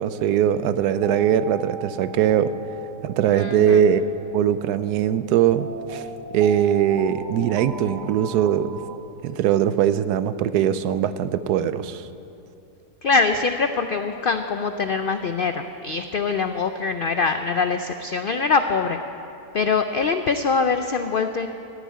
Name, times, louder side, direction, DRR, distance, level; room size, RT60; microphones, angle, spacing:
voice 1, 0.0-2.5 3.0-4.0 4.3-6.1 6.3-8.8 9.2-12.1, right 9 dB, 85° right, 13 dB, 1.2 m, -21 dB
sound 1, 0.8-9.0, right 4 dB, 60° right, 1.4 m, -38 dB
voice 2, 3.3-3.8 13.0-19.0 19.5-21.5, left 4 dB, 80° left, 8 dB, 0.4 m, -23 dB
15.0 x 8.2 x 9.3 m, 2.8 s
omnidirectional pair, 1.6 m